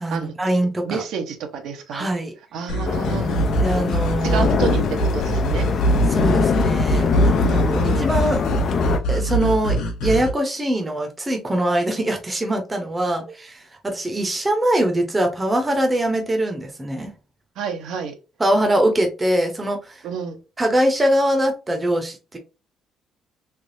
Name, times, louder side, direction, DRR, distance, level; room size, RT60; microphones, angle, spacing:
voice 1, 0.0-1.0 1.9-2.3 3.6-4.5 6.1-7.1 7.5-8.4 9.1-9.8 10.0-17.1 18.4-20.0 20.6-22.4, right 1 dB, 15° right, 0.7 m, -22 dB
voice 2, 0.8-2.1 2.5-3.5 4.2-5.9 7.1-8.1 17.6-18.2 20.0-20.4, right 6 dB, 70° right, 0.7 m, -29 dB
sound 1, 2.7-10.3, right 1 dB, 80° left, 1.0 m, -23 dB
sound 2, 2.8-9.0, left 5 dB, 40° left, 0.4 m, -22 dB
3.4 x 3.1 x 2.6 m
cardioid pair, 150°, 0 cm